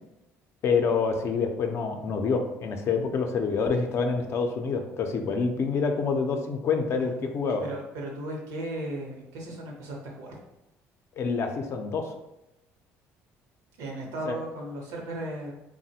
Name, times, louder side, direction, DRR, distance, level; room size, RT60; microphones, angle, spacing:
voice 1, 0.6-7.6 11.2-12.0 14.3-14.4, left 5 dB, 55° left, 5 dB, 0.4 m, -27 dB
voice 2, 7.0-10.4 13.8-15.5, right 1 dB, 90° right, -1 dB, 0.7 m, -36 dB
3.1 x 2.1 x 2.8 m, 0.91 s
cardioid pair, 100°, 6 cm